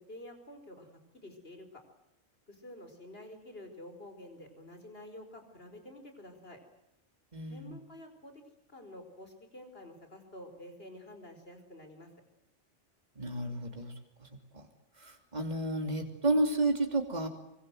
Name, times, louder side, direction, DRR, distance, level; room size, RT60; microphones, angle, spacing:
voice 1, 0.0-1.8 2.5-6.6 7.5-8.4 8.7-12.1, left 1 dB, 50° left, 7 dB, 5.1 m, -49 dB
voice 2, 7.3-7.8 13.2-13.9 14.2-14.3 14.5-14.7 15.0-17.3, right 2 dB, 35° right, 4 dB, 3.1 m, -31 dB
25.0 x 23.0 x 7.9 m, 0.91 s
omnidirectional pair, 1.2 m